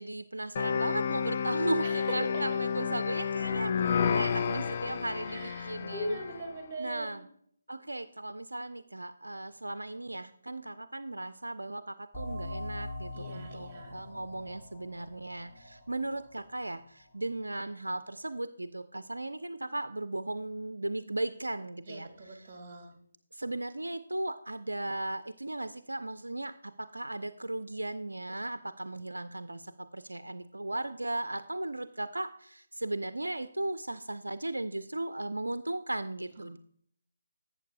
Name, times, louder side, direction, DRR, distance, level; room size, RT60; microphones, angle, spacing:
voice 1, 0.0-6.2 6.8-7.3 7.7-22.5 23.3-36.6, right 2 dB, 70° right, 12 dB, 0.4 m, -36 dB
sound 1, 0.6-6.5, left 6 dB, 35° left, 0.4 m, -31 dB
voice 2, 5.3-7.2 13.1-14.0 21.9-22.9, right 1 dB, 20° right, 3 dB, 1.9 m, -40 dB
sound 2, 12.1-17.4, left 1 dB, 15° left, 2.4 m, -43 dB
12.0 x 8.2 x 2.4 m, 0.64 s
figure-of-eight pair, 145°, 0 cm